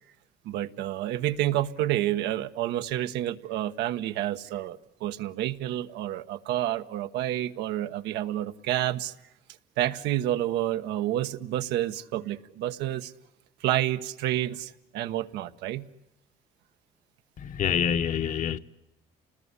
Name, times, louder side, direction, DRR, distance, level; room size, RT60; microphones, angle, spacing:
voice 1, 0.4-9.1 9.8-13.1 13.6-15.9, right 13 dB, 90° right, 1.2 m, -29 dB
voice 2, 17.4-18.6, left 8 dB, 50° left, 1.1 m, -26 dB
28.5 x 20.0 x 9.6 m
cardioid pair, 110°, 17 cm